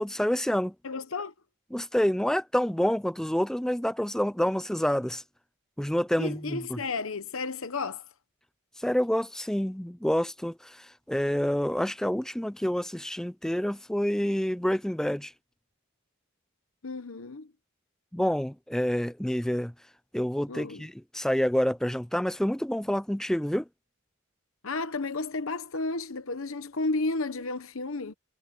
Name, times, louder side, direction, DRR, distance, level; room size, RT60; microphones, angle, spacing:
voice 1, 0.0-0.7 1.7-5.2 5.8-6.8 8.8-15.3 18.1-19.7 20.1-23.7, equal, ahead, 0.3 m, -28 dB
voice 2, 0.8-1.3 6.2-8.0 16.8-17.5 20.5-20.8 24.6-28.1, left 3 dB, 70° left, 1.0 m, -32 dB
head